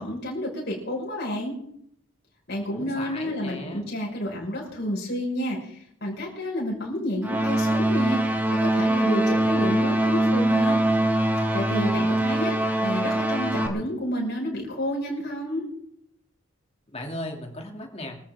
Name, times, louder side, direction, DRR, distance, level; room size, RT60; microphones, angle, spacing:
voice 1, 0.0-1.6 2.5-10.8 11.5-15.6, equal, 50° left, -3 dB, 5.5 m, -30 dB
voice 2, 2.7-3.9 16.9-18.2, left 1 dB, 30° left, 2 dB, 2.7 m, -36 dB
sound 1, 7.2-13.7, right 1 dB, 10° right, 1.6 m, -23 dB
23.0 x 14.0 x 3.7 m, 0.72 s
head